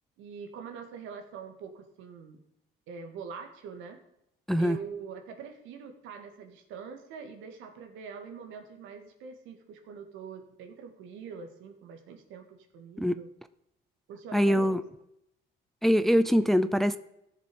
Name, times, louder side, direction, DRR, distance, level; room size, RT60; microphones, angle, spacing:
voice 1, 0.2-2.4 2.9-4.0 4.6-13.3 14.1-14.7, right 6 dB, 85° right, 1.9 m, -44 dB
voice 2, 14.3-14.8 15.8-17.0, equal, ahead, 0.5 m, -23 dB
14.5 x 7.0 x 5.3 m
cardioid pair, 110°, 20 cm